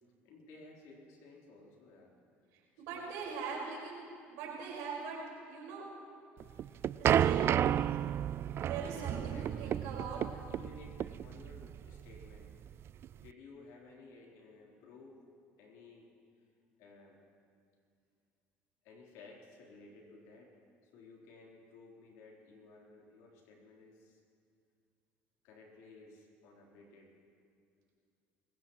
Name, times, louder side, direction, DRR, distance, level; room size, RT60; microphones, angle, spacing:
voice 1, 0.2-2.1 2.9-3.2 8.1-8.3 8.8-12.5 13.1-15.2 15.6-16.1 16.8-17.2 18.8-20.5 20.8-24.2 25.4-27.1, left 3 dB, 75° left, -2 dB, 3.6 m, -55 dB
voice 2, 2.5-5.2 5.5-5.9 6.6-6.7 7.0-7.5 8.6-10.2, right 5 dB, 80° right, -3 dB, 4.9 m, -42 dB
sound 1, 6.4-13.3, right 10 dB, 50° right, 0.4 m, -32 dB
24.0 x 15.5 x 3.1 m, 2.3 s
supercardioid pair, 80°, 5 cm